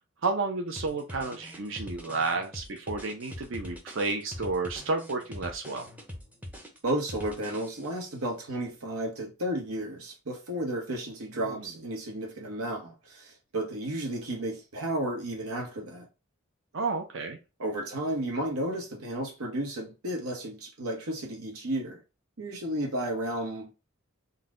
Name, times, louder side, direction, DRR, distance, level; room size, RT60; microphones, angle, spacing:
voice 1, 0.2-5.8 11.5-11.6 16.7-17.4, right 3 dB, 60° right, 0.6 m, -31 dB
sound 1, 0.8-8.1, equal, 5° right, 0.6 m, -43 dB
voice 2, 6.8-16.1 17.6-22.0 22.4-23.7, right 1 dB, 90° right, 1.0 m, -33 dB
3.9 x 2.2 x 3.6 m
head